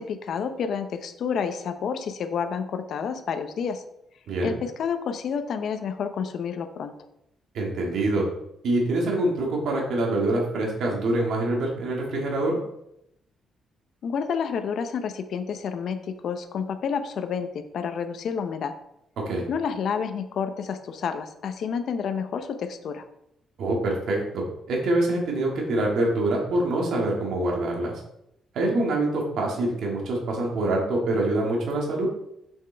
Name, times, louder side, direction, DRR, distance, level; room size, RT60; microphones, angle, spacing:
voice 1, 0.0-3.8 4.4-6.9 14.0-18.7 19.5-23.0, left 6 dB, 55° left, 8 dB, 0.6 m, -29 dB
voice 2, 7.5-8.2 8.6-12.6 19.3-19.5 23.6-28.0 28.5-32.1, right 2 dB, 70° right, -1 dB, 1.9 m, -25 dB
7.2 x 6.5 x 3.4 m, 0.80 s
cardioid pair, 155°, 0 cm